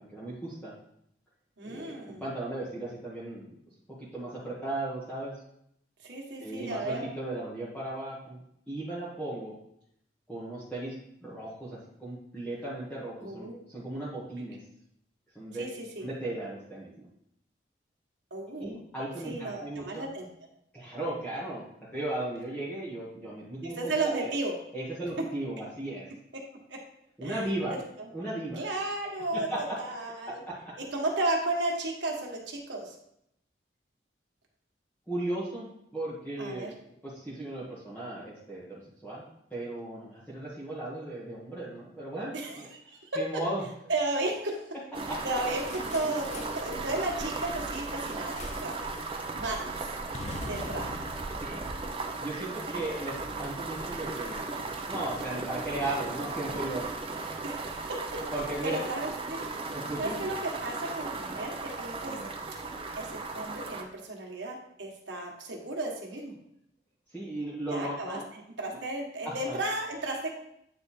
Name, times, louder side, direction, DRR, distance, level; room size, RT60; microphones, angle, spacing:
voice 1, 0.1-0.7 1.6-3.4 4.1-5.4 6.4-9.5 10.3-10.9 11.2-14.6 15.3-15.6 16.0-17.0 18.6-20.1 20.7-21.6 21.9-24.3 24.7-26.1 27.2-27.8 28.1-28.6 29.2-29.8 30.3-30.7 35.1-36.7 37.0-42.7 43.2-43.6 45.1-45.2 51.3-51.7 52.2-54.6 54.9-56.9 58.3-58.8 59.7-60.2 62.0-62.3 67.1-68.2 68.7-68.8 69.2-69.6, right 1 dB, 5° left, -10 dB, 1.3 m, -36 dB
voice 2, 1.6-2.2 6.0-7.0 13.2-13.5 15.6-16.0 18.3-18.7 19.2-20.3 23.6-24.5 26.7-26.8 27.2-27.8 28.6-29.5 29.8-30.4 30.9-32.9 36.4-36.7 42.3-43.0 43.9-44.7 45.2-48.8 49.4-50.0 50.5-51.0 52.6-52.8 57.4-58.0 58.6-59.4 60.0-62.2 63.0-66.3 67.7-68.2 68.6-70.3, right 2 dB, 75° right, 0 dB, 1.4 m, -34 dB
sound 1, 44.9-63.8, right 3 dB, 30° right, 0.6 m, -36 dB
sound 2, 45.7-46.7 48.4-48.8 49.0-49.3 50.1-52.5, left 2 dB, 35° left, 0.5 m, -43 dB
8.7 x 3.3 x 4.2 m, 0.74 s
head